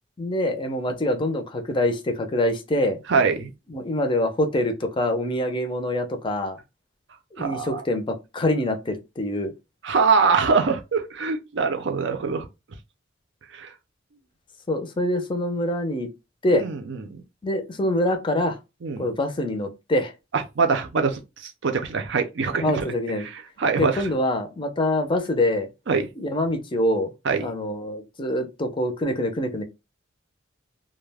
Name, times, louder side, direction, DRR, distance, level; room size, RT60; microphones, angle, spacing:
voice 1, 0.2-3.0 3.7-6.6 7.4-9.5 14.7-16.1 16.4-16.6 17.4-18.6 19.0-20.1 22.6-23.3 23.8-25.7 26.2-27.1 27.4-29.6, left 1 dB, 25° left, 0.5 m, -25 dB
voice 2, 3.1-3.5 7.4-7.8 9.8-12.5 13.5-13.7 16.5-17.2 18.8-19.1 20.3-22.9 23.2-24.1 25.9-26.1 27.2-27.5, right 5 dB, 65° right, 0.5 m, -24 dB
2.3 x 2.1 x 3.3 m
head